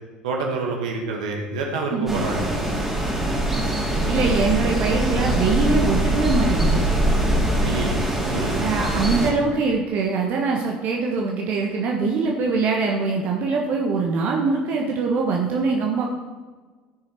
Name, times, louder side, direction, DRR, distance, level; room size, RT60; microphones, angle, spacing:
voice 1, 0.2-2.5 7.6-8.6, right 3 dB, 70° right, 0 dB, 2.1 m, -27 dB
voice 2, 1.9-2.2 4.1-6.8 8.6-16.1, right 4 dB, 50° right, 0 dB, 1.5 m, -23 dB
sound 1, 2.1-9.3, right 1 dB, 5° right, 3.2 m, -22 dB
15.5 x 6.6 x 4.5 m, 1.3 s
figure-of-eight pair, 60°, 4 cm